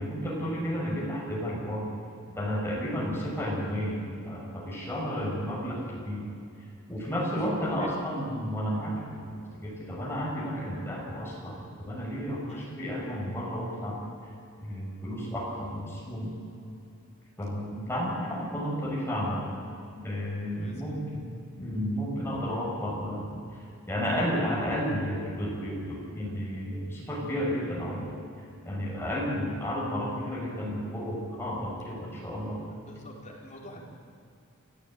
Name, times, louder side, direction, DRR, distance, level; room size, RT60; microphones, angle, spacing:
voice 1, 0.0-1.8 2.4-6.3 6.9-9.4 9.6-14.0 14.6-16.3 17.4-19.5 19.9-21.3 21.6-23.4 23.9-28.1 28.6-32.6, equal, 10° left, -4 dB, 6.3 m, -32 dB
voice 2, 7.5-7.9 12.5-12.7 20.6-20.8 32.8-33.8, left 1 dB, 30° left, -2 dB, 4.3 m, -47 dB
27.5 x 14.5 x 9.0 m, 2.6 s
head